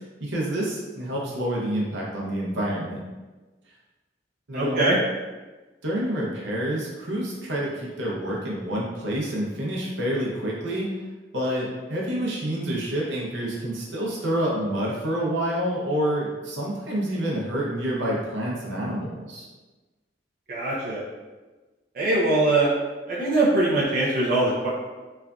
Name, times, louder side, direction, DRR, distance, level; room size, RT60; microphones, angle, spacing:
voice 1, 0.0-3.1 4.5-4.9 5.8-11.0 11.3-19.5, right 1 dB, 80° right, -4 dB, 0.7 m, -28 dB
voice 2, 4.5-5.0 20.5-21.0 21.9-22.7 23.1-24.7, right 2 dB, 50° right, -7 dB, 0.5 m, -22 dB
3.2 x 2.4 x 2.3 m, 1.2 s
head